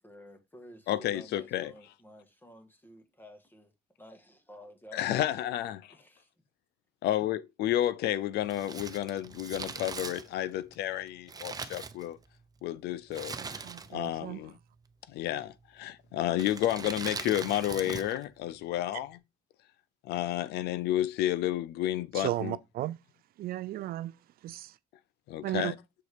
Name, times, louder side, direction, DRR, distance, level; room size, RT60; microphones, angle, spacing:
voice 1, 0.0-3.7 4.0-5.1 5.9-6.3, equal, 10° left, 1.7 m, -52 dB
voice 2, 0.9-1.7 4.9-5.8 7.0-12.2 12.6-13.6 13.9-14.5 15.1-19.2 20.0-22.6 25.3-25.8, left 13 dB, 75° left, 0.5 m, -31 dB
Crumpling crinkling, 8.5-12.5 13.1-14.1 14.4-14.5 15.3-15.7 16.3-18.2 18.5-18.6, right 5 dB, 20° right, 0.7 m, -41 dB
voice 3, 13.4-14.4 22.1-23.0 23.4-24.1 24.4-24.7 25.4-25.7, right 14 dB, 60° right, 0.4 m, -35 dB
6.9 x 3.9 x 4.9 m
cardioid pair, 110°, 17 cm